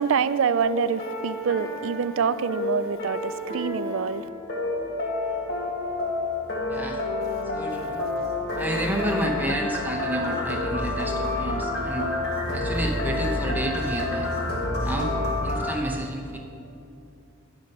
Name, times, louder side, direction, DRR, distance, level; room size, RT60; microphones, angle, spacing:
voice 1, 0.0-4.3, right 6 dB, 70° right, 0.4 m, -26 dB
sound 1, 0.6-15.7, left 2 dB, 50° left, 1.5 m, -29 dB
voice 2, 6.7-7.0 7.5-8.0 8.6-12.1 12.5-14.3 14.8-15.1 15.4-16.4, right 1 dB, 10° right, 0.8 m, -30 dB
10.0 x 5.3 x 6.6 m
head